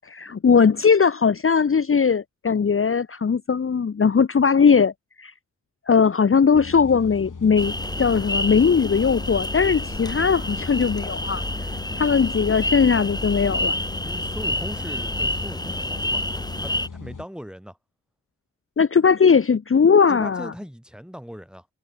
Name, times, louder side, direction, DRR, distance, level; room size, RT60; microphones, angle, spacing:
voice 1, 0.0-4.9 5.2-5.3 5.9-11.4 11.9-13.8 18.8-20.5, left 6 dB, 45° left, 0.7 m, -19 dB
sound 1, 6.5-17.2, left 5 dB, 80° left, 7.9 m, -38 dB
sound 2, 7.5-16.9, left 1 dB, 15° left, 3.5 m, -28 dB
voice 2, 14.0-16.3 16.6-17.8 20.1-21.7, equal, 5° right, 3.2 m, -38 dB
wide cardioid pair, 75°, 31 cm